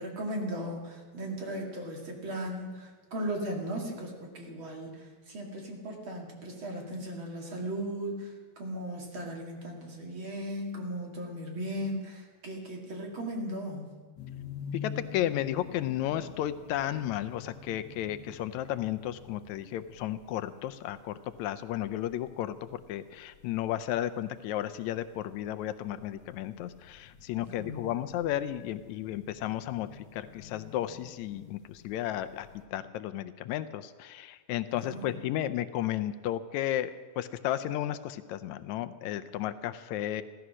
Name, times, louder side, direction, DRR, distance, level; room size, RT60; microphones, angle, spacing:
voice 1, 0.0-13.9 27.4-27.9 34.7-35.3, equal, 45° right, 1 dB, 2.7 m, -37 dB
sound 1, 14.2-32.6, left 6 dB, 65° left, 2.6 m, -48 dB
voice 2, 14.8-40.2, left 12 dB, 80° left, 11 dB, 1.9 m, -33 dB
15.5 x 14.0 x 6.2 m, 1.5 s
omnidirectional pair, 3.3 m